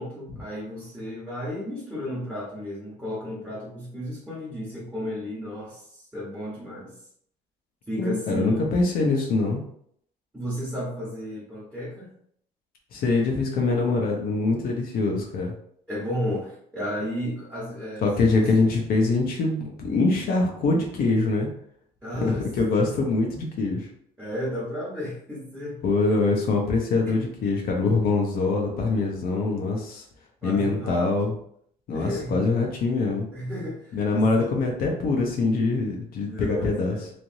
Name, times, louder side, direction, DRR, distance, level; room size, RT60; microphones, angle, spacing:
voice 1, 0.0-7.0 7.9-8.7 10.3-12.1 15.9-18.6 22.0-22.4 22.8-23.1 24.2-25.8 27.0-27.1 30.4-31.1 31.9-32.5 33.3-34.6 36.3-37.1, equal, 5° right, -8 dB, 1.1 m, -33 dB
voice 2, 8.0-9.6 12.9-15.5 18.0-21.5 22.2-23.9 25.8-30.0 30.4-31.3 31.9-33.3 33.9-37.0, left 3 dB, 60° left, 0 dB, 0.7 m, -24 dB
3.2 x 2.6 x 2.6 m, 0.66 s
cardioid pair, 110°, 17 cm